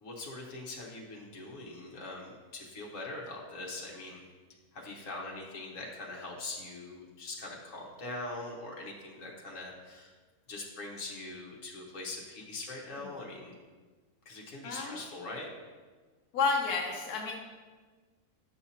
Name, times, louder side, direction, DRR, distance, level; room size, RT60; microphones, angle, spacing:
voice 1, 0.0-4.2 4.7-10.1 10.5-13.5 14.2-15.5, left 2 dB, 60° left, -2 dB, 1.6 m, -42 dB
voice 2, 14.6-15.0 16.3-17.3, left 4 dB, 85° left, 0 dB, 1.2 m, -31 dB
9.0 x 5.8 x 2.8 m, 1.4 s
omnidirectional pair, 1.6 m